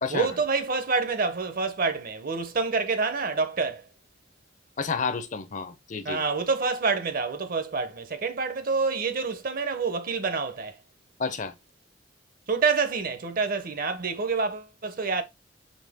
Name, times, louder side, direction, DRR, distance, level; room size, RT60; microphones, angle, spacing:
voice 1, 0.1-3.8 6.0-10.8 12.5-15.2, right 4 dB, 50° right, 0.7 m, -27 dB
voice 2, 4.8-6.2 11.2-11.5, left 5 dB, 40° left, 0.6 m, -30 dB
4.2 x 3.4 x 3.4 m
head